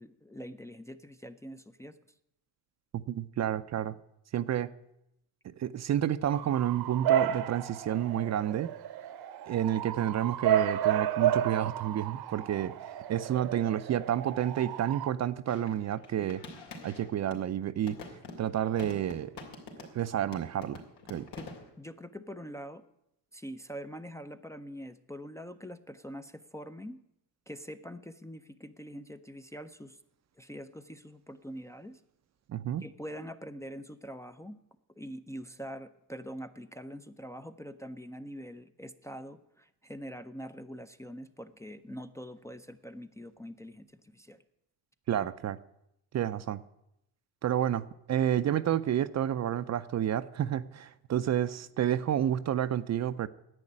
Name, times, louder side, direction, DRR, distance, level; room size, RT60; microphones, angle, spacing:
voice 1, 0.0-1.9 21.4-21.5 21.8-22.8 23.3-27.0 27.5-30.0 30.4-32.0 32.8-34.6 35.0-44.4, equal, 5° left, 6 dB, 0.5 m, -44 dB
voice 2, 2.9-3.9 4.3-4.7 5.4-8.7 9.5-16.4 16.8-18.0 18.4-19.3 19.8-20.8 21.1-21.3 32.5-32.8 45.1-45.6 46.1-46.6 47.4-53.3, right 10 dB, 40° right, 13 dB, 0.5 m, -30 dB
Bark / Motor vehicle (road) / Siren, 6.3-15.1, right 10 dB, 65° right, 1.0 m, -32 dB
sound 1, 15.5-17.5 17.9-20.1 20.3-21.7, left 3 dB, 75° left, 3.2 m, -46 dB
11.0 x 8.5 x 9.9 m, 0.81 s
cardioid pair, 120°, 41 cm